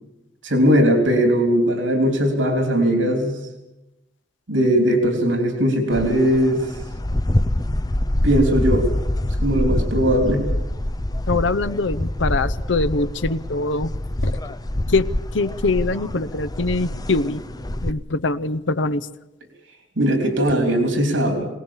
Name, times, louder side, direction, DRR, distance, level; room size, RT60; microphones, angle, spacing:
voice 1, 0.4-3.4 4.5-6.6 8.2-8.9 9.4-10.4 20.0-21.5, equal, 85° right, 4 dB, 3.5 m, -19 dB
sound 1, 5.9-17.9, left 1 dB, 20° left, 0.7 m, -25 dB
voice 2, 11.3-13.9 14.2-14.4 14.9-17.4 17.8-19.1, left 3 dB, 70° left, 15 dB, 0.8 m, -23 dB
22.0 x 19.0 x 7.3 m, 0.96 s
head